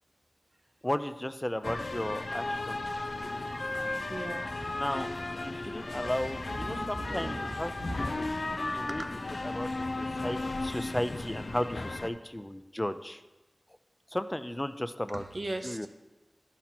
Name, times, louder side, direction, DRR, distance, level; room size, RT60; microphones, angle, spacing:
voice 1, 0.8-2.8 4.8-5.1 5.4-7.7 8.0-8.2 8.7-9.0 9.4-13.2 14.1-15.2 15.6-15.9, left 1 dB, 20° left, 10 dB, 0.5 m, -34 dB
sound 1, 1.6-12.1, left 2 dB, 80° left, 0.5 m, -35 dB
voice 2, 4.1-4.7 5.5-5.9 6.5-8.1 8.5-8.6 8.9-9.1 15.1-15.9, right 1 dB, 65° right, 7 dB, 0.7 m, -39 dB
12.0 x 6.0 x 4.2 m, 1.1 s
wide cardioid pair, 60°, 0 cm